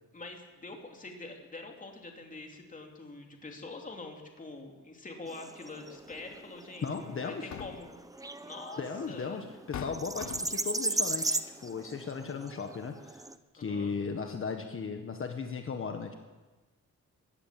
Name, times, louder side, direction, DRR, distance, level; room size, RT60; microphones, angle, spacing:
voice 1, 0.1-8.8 9.1-9.4 13.6-13.9, left 3 dB, 25° left, 2 dB, 3.1 m, -45 dB
sound 1, 5.3-13.3, right 2 dB, 10° right, 0.7 m, -37 dB
sound 2, 6.1-6.3 7.2-8.0 9.1-9.2 9.7-10.7, left 9 dB, 60° left, 0.9 m, -42 dB
voice 2, 6.8-7.5 8.8-13.2 13.5-16.1, left 5 dB, 40° left, 4 dB, 1.5 m, -36 dB
21.5 x 16.5 x 7.6 m, 1.3 s
wide cardioid pair, 165°, 33 cm